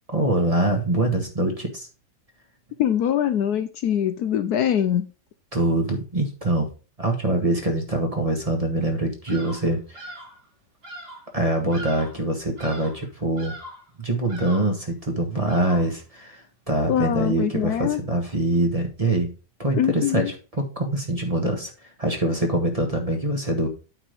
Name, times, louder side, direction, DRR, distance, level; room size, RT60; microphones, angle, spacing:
voice 1, 0.1-1.9 5.5-6.7 7.0-10.0 11.3-13.5 14.0-16.4 16.7-19.3 19.6-20.3 20.6-21.7 22.0-23.7, right 2 dB, 20° right, 3 dB, 1.4 m, -24 dB
voice 2, 2.8-5.1 16.9-18.0 19.8-20.3, left 10 dB, 70° left, 11 dB, 1.1 m, -23 dB
Bird vocalization bird call bird song, 9.3-9.7 9.9-10.4 10.8-11.3 11.7-12.2 12.6-13.0 13.4-13.9 14.3-14.8 15.5-16.0, right 1 dB, 70° right, 3.1 m, -40 dB
8.7 x 4.4 x 5.1 m, 0.33 s
omnidirectional pair, 1.8 m